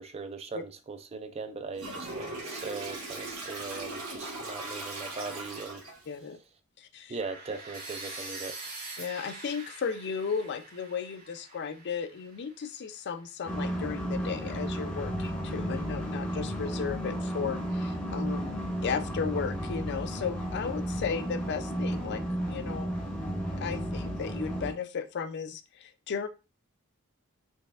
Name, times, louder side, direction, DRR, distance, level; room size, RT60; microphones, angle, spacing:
voice 1, 0.0-5.8 7.1-8.5, right 4 dB, 30° right, 9 dB, 0.3 m, -39 dB
Toilet flush, 1.8-6.1, right 2 dB, 90° right, 1.4 m, -39 dB
voice 2, 6.1-6.4 6.8-7.2 9.0-22.9 23.6-26.3, left 6 dB, 50° left, 10 dB, 0.4 m, -35 dB
sound 1, 7.2-13.1, right 3 dB, 45° right, 1.9 m, -44 dB
sound 2, 13.5-24.7, equal, 5° left, 0.7 m, -33 dB
4.1 x 3.2 x 2.4 m, 0.31 s
head